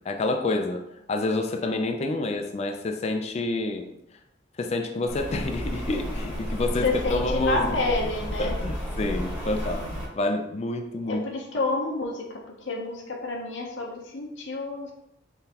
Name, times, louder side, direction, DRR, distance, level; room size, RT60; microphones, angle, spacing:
voice 1, 0.0-0.8 1.1-3.9 4.6-8.0 8.4-9.9 10.1-11.3, left 2 dB, 35° left, 4 dB, 0.4 m, -28 dB
Rain, 5.1-10.1, equal, 10° right, 1.1 m, -32 dB
voice 2, 6.8-8.6 11.1-12.2 12.6-14.9, left 2 dB, 70° left, 0 dB, 0.7 m, -29 dB
3.8 x 3.5 x 2.8 m, 0.81 s
head